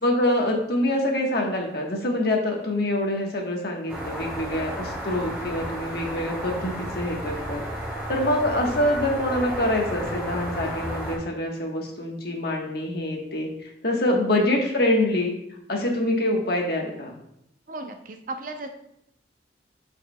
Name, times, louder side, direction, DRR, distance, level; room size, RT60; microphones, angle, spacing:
voice 1, 0.0-7.6 8.1-15.3 15.7-17.1, left 1 dB, 55° left, 1 dB, 1.3 m, -25 dB
sound 1, 3.9-11.2, right 1 dB, 10° right, 2.8 m, -33 dB
voice 2, 17.7-18.7, right 2 dB, 45° right, 5 dB, 0.6 m, -35 dB
13.0 x 4.8 x 2.2 m, 0.78 s
head